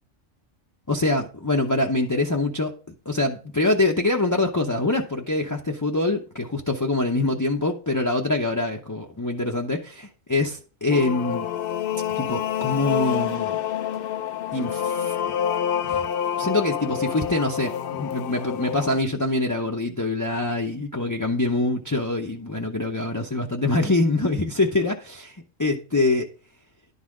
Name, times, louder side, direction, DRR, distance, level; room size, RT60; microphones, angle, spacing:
voice 1, 0.9-2.7 3.1-11.5 12.2-13.6 14.5-15.1 15.8-16.0 16.4-26.3, left 2 dB, 20° left, 0.6 m, -24 dB
sound 1, 10.9-19.0, left 9 dB, 60° left, 0.6 m, -27 dB
11.0 x 4.1 x 4.8 m
omnidirectional pair, 1.3 m